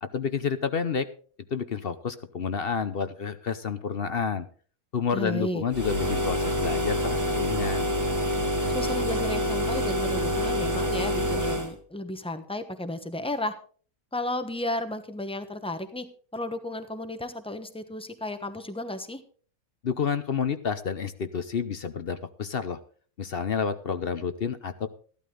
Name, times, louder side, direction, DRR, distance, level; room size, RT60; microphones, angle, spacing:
voice 1, 0.0-1.1 1.5-4.5 4.9-7.9 19.8-22.8 23.2-24.9, left 6 dB, 50° left, 11 dB, 0.8 m, -29 dB
voice 2, 5.1-5.6 8.7-13.5 14.1-16.1 16.3-19.2, left 1 dB, 5° left, 9 dB, 0.9 m, -33 dB
sound 1, 5.7-11.7, equal, 15° right, 1.3 m, -27 dB
14.5 x 12.0 x 3.8 m, 0.43 s
omnidirectional pair, 1.5 m